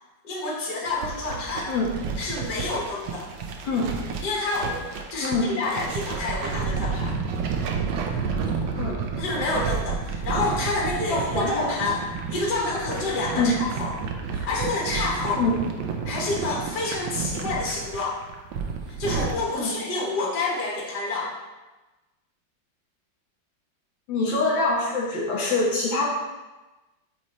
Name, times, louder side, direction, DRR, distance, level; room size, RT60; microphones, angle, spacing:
voice 1, 0.2-1.7 2.2-3.3 4.2-4.8 5.1-7.1 9.2-12.0 12.3-13.9 14.3-15.4 16.0-18.2 18.9-21.3, left 3 dB, 60° left, -4 dB, 1.8 m, -28 dB
sound 1, 0.9-19.4, right 5 dB, 85° right, 1.4 m, -31 dB
voice 2, 11.1-11.7 13.3-13.6 15.3-15.6 19.6-19.7 24.1-26.0, left 3 dB, 80° left, -4 dB, 2.2 m, -24 dB
8.4 x 3.1 x 4.1 m, 1.1 s
omnidirectional pair, 2.0 m